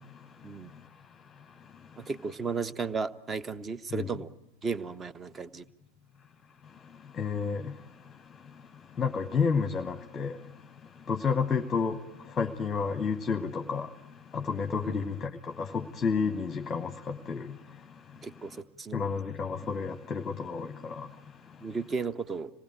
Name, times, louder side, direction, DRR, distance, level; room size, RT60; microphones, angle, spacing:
voice 1, 0.0-2.1 3.9-4.1 6.6-18.6 18.9-21.8, left 5 dB, 20° left, 1.0 m, -33 dB
voice 2, 2.0-4.3 4.6-5.6 14.8-15.1 16.2-16.3 18.2-19.1 21.6-22.5, right 5 dB, 20° right, 0.9 m, -34 dB
26.5 x 19.0 x 9.2 m
figure-of-eight pair, 90°, 0 cm